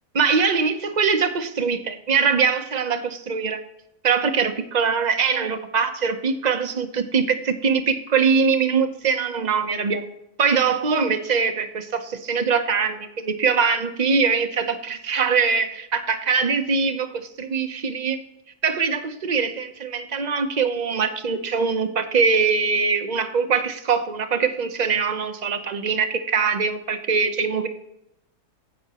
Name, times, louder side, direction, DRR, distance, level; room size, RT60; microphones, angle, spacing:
voice 1, 0.2-3.6 4.0-10.1 10.4-18.2 18.6-27.7, right 5 dB, 45° right, 8 dB, 0.5 m, -22 dB
16.5 x 5.9 x 2.9 m, 0.85 s
omnidirectional pair, 1.7 m